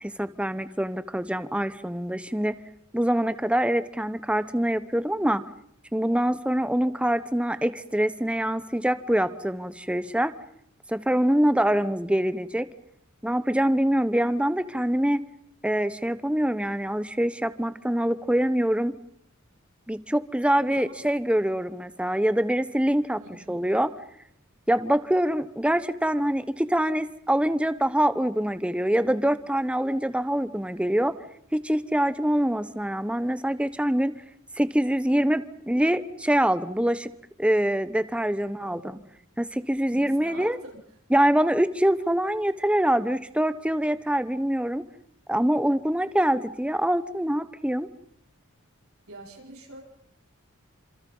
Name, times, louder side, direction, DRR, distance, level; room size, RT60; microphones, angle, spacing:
voice 1, 0.0-2.6 2.9-5.4 5.9-10.3 10.9-12.7 13.2-15.2 15.6-18.9 19.9-23.2 23.5-23.9 24.7-31.1 31.5-34.1 34.6-37.1 37.4-39.0 39.4-40.6 41.1-44.8 45.3-47.9, right 1 dB, 5° right, 13 dB, 1.0 m, -24 dB
voice 2, 20.7-21.0 23.1-23.6 38.6-39.1 39.9-40.8 49.1-49.8, right 1 dB, 85° right, -1 dB, 7.0 m, -45 dB
28.5 x 27.0 x 5.5 m, 0.71 s
head